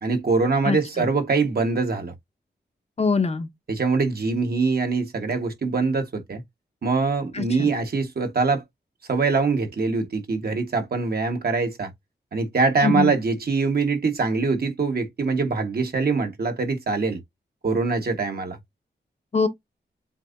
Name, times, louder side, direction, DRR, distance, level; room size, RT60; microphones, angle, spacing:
voice 1, 0.0-2.1 3.7-6.4 6.8-8.6 9.1-11.9 12.3-17.2 17.6-18.6, right 4 dB, 55° right, 1.4 m, -23 dB
voice 2, 0.6-1.1 3.0-3.5 7.3-7.7 12.8-13.1 19.3-19.5, left 4 dB, 35° left, 0.7 m, -23 dB
7.4 x 2.7 x 2.6 m
wide cardioid pair, 160°, 19 cm